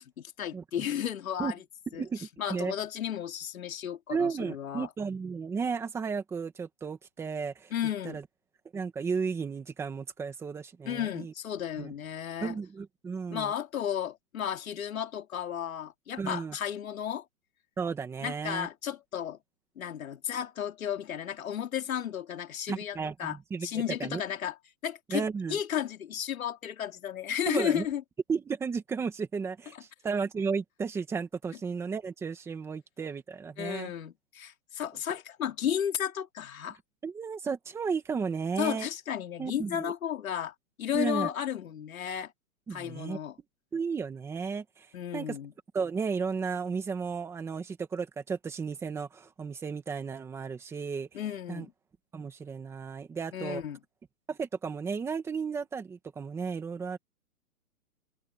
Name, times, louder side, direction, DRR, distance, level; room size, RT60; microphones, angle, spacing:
voice 1, 0.0-1.6 1.9-2.0 2.4-4.9 7.7-8.2 10.8-12.6 13.3-17.3 18.2-19.4 19.8-23.4 23.6-24.6 24.8-25.2 25.5-28.0 33.6-36.8 38.6-42.3 42.7-43.4 44.9-45.5 51.1-51.7 53.3-53.8, left 9 dB, 65° left, 3.6 m, -33 dB
voice 2, 1.9-2.7 4.1-7.7 8.0-8.2 8.7-11.3 11.8-11.9 12.4-13.5 16.2-16.6 17.8-18.7 22.7-23.7 24.0-24.2 25.1-25.6 27.5-27.8 28.3-33.9 37.0-38.9 39.4-39.9 40.9-41.3 42.7-43.2 43.7-44.9 45.1-45.4 45.7-51.1 51.5-51.7 52.1-53.6 54.3-57.0, right 5 dB, 5° right, 1.7 m, -34 dB
open air
hypercardioid pair, 170°, 44 cm